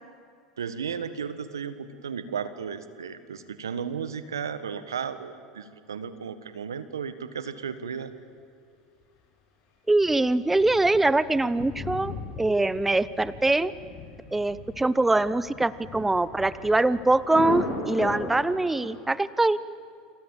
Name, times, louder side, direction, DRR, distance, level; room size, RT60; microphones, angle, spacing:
voice 1, 0.6-8.1, right 7 dB, 85° right, 12 dB, 1.6 m, -34 dB
voice 2, 9.9-13.7 14.3-19.6, right 2 dB, 10° right, 17 dB, 0.9 m, -23 dB
Thunder, 10.0-19.0, left 4 dB, 50° left, 7.6 m, -37 dB
28.5 x 27.0 x 7.4 m, 2.3 s
hypercardioid pair, 80°, 2 cm